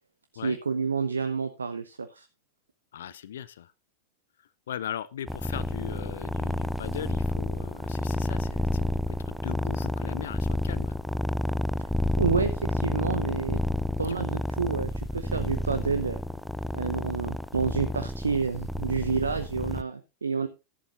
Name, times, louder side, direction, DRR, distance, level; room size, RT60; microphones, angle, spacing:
voice 1, 0.3-2.3 12.2-13.6 14.0-16.2 16.7-20.5, right 5 dB, 75° right, 9 dB, 0.9 m, -29 dB
voice 2, 2.9-3.7 4.7-10.9 14.1-14.2, left 10 dB, 60° left, 18 dB, 0.6 m, -39 dB
sound 1, 5.3-19.8, left 1 dB, ahead, 0.6 m, -30 dB
14.0 x 11.0 x 2.6 m, 0.26 s
figure-of-eight pair, 90°, 0 cm